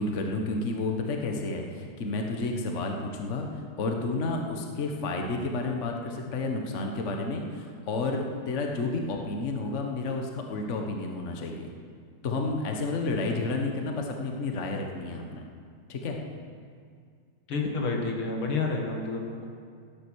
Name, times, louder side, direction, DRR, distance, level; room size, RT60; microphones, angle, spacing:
voice 1, 0.0-3.5 3.8-11.7 12.2-15.4 15.9-16.2, left 3 dB, 40° left, 2 dB, 1.4 m, -31 dB
voice 2, 17.5-19.5, left 3 dB, 85° left, 1 dB, 2.7 m, -29 dB
16.5 x 10.0 x 6.3 m, 2.1 s
omnidirectional pair, 2.3 m